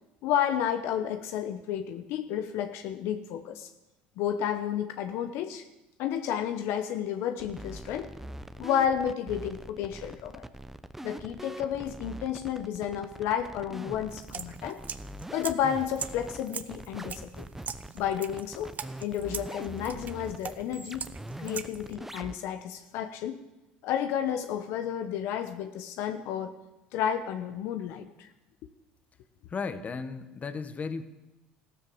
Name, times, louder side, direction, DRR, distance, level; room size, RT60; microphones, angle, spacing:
voice 1, 0.2-3.7 4.2-5.7 6.0-8.1 8.6-10.4 11.0-14.8 15.3-17.5 17.9-21.1 21.4-23.4 23.8-26.5 26.9-28.3, left 9 dB, 65° left, 8 dB, 1.0 m, -31 dB
sound 1, 7.4-22.4, right 1 dB, 5° right, 0.9 m, -43 dB
sound 2, 14.1-21.9, right 6 dB, 35° right, 1.0 m, -42 dB
voice 2, 29.5-31.0, left 5 dB, 35° left, 11 dB, 1.4 m, -35 dB
15.0 x 13.0 x 7.0 m, 1.0 s
hypercardioid pair, 75°, 4 cm